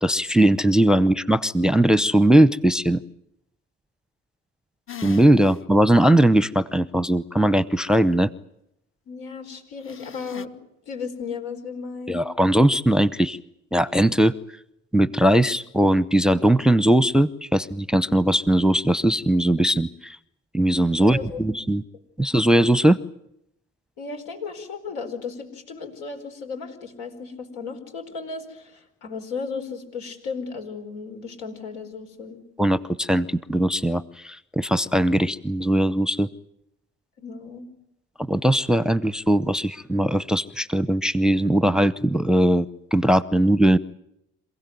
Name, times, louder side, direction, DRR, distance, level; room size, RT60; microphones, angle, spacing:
voice 1, 0.0-3.0 5.0-8.3 12.1-13.4 13.7-14.3 14.9-20.2 20.5-21.8 22.2-23.0 32.6-36.3 38.3-43.8, right 1 dB, ahead, 18 dB, 0.8 m, -19 dB
sound 1, 4.9-5.6 6.0-6.1 9.8-10.5, left 10 dB, 40° left, 1.2 m, -40 dB
voice 2, 9.1-10.6 10.9-12.2 21.0-21.4 24.0-32.4 37.2-37.6, left 5 dB, 80° left, 5 dB, 4.6 m, -35 dB
27.5 x 16.5 x 9.4 m, 0.79 s
hypercardioid pair, 65°, 32 cm